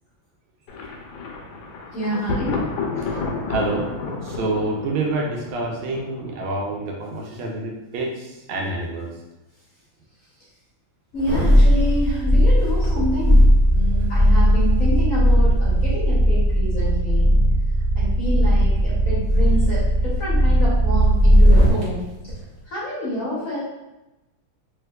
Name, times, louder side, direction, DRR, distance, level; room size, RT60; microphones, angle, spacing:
Thunder, 0.7-6.5, left 3 dB, 75° left, 1.3 m, -30 dB
voice 1, 1.9-2.6 3.0-3.2 11.1-13.4 13.7-17.3 17.9-22.0 22.7-23.6, equal, 55° left, -8 dB, 1.0 m, -28 dB
voice 2, 3.5-3.9 4.2-9.1, right 2 dB, 80° right, 0 dB, 1.4 m, -27 dB
sound 1, 11.2-21.8 22.3-22.4, equal, 55° right, 0.4 m, -17 dB
3.4 x 2.9 x 2.2 m, 0.99 s
omnidirectional pair, 2.2 m